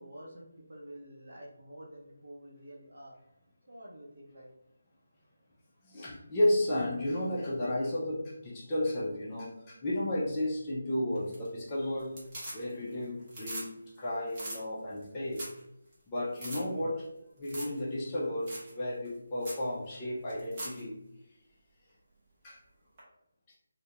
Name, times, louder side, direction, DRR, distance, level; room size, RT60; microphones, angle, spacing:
voice 1, 0.0-3.2 3.7-4.5, right 1 dB, 55° right, -3 dB, 0.6 m, -49 dB
voice 2, 5.8-12.1 12.5-15.4 16.1-17.0 17.4-20.9 22.4-22.6, left 1 dB, 15° left, -7 dB, 0.4 m, -33 dB
sound 1, 11.2-11.7 12.0-12.9 13.2-13.7 14.0-14.1 14.3-14.6 15.0-15.1 15.3-15.6 15.9-16.0 16.3-16.6 17.4-17.8 18.1-18.2 18.5-18.7 19.1-19.2 19.4-19.6 20.3-20.8 23.0-23.1, right 1 dB, 25° right, 0.8 m, -41 dB
2.3 x 2.1 x 2.8 m, 0.84 s
figure-of-eight pair, 170°, 0 cm